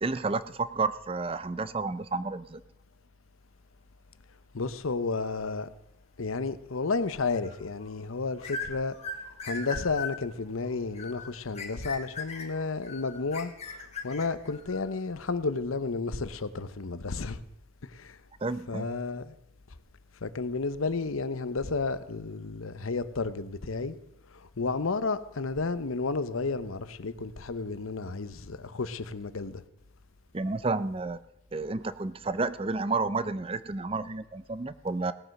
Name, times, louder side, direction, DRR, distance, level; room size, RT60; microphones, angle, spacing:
voice 1, 0.0-2.6 18.4-18.9 30.3-31.2 31.5-35.1, right 3 dB, 25° right, 0.5 m, -31 dB
voice 2, 4.5-5.7 6.2-9.0 9.4-17.4 17.8-18.2 18.7-19.3 20.2-24.0 24.3-29.6, left 4 dB, 90° left, 0.8 m, -32 dB
sound 1, 7.3-7.9 8.4-14.9, left 4 dB, 30° left, 1.7 m, -39 dB
17.5 x 7.8 x 6.5 m
head